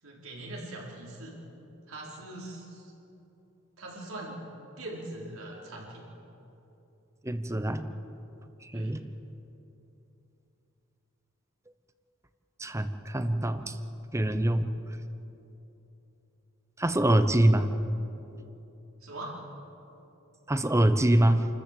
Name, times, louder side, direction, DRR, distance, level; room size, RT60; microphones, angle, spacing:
voice 1, 0.0-1.4 1.9-2.9 3.8-4.5 4.8-6.1 8.7-9.0 19.0-19.3, right 1 dB, 90° right, -3 dB, 4.9 m, -41 dB
voice 2, 7.2-7.9 8.7-9.0 12.6-13.8 14.1-14.7 16.8-17.7 20.5-21.5, right 1 dB, 15° right, 10 dB, 0.9 m, -24 dB
28.5 x 14.0 x 7.7 m, 3.0 s
head